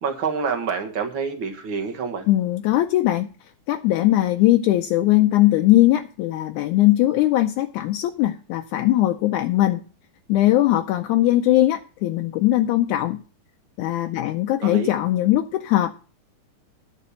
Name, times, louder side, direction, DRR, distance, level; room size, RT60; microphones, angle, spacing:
voice 1, 0.0-2.3 14.6-14.9, right 5 dB, 50° right, 5 dB, 1.8 m, -27 dB
voice 2, 2.3-3.3 3.7-9.8 10.3-13.2 13.8-15.9, left 15 dB, 80° left, 6 dB, 2.0 m, -20 dB
9.9 x 6.4 x 6.3 m, 0.38 s
omnidirectional pair, 3.6 m